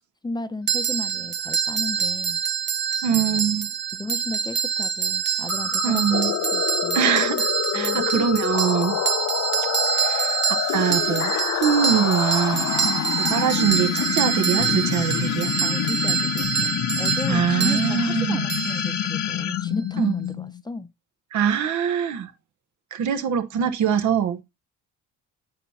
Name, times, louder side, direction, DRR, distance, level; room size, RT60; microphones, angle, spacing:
voice 1, 0.2-2.4 3.1-3.5 3.9-6.2 6.5-7.0 7.7-8.3 12.8-13.3 15.6-20.9, left 3 dB, 15° left, 0.6 m, -34 dB
sound 1, 0.7-19.4, right 8 dB, 35° right, 0.7 m, -26 dB
voice 2, 3.0-3.7 5.8-6.3 6.9-9.0 9.9-12.7 13.3-15.5 17.3-18.5 20.0-20.2 21.3-22.3 22.9-24.4, right 8 dB, 70° right, 1.0 m, -23 dB
sound 2, 5.5-20.6, left 12 dB, 65° left, 0.6 m, -27 dB
Tools, 10.6-16.5, right 2 dB, 10° right, 1.0 m, -42 dB
8.3 x 2.8 x 5.5 m
cardioid pair, 90°, 30 cm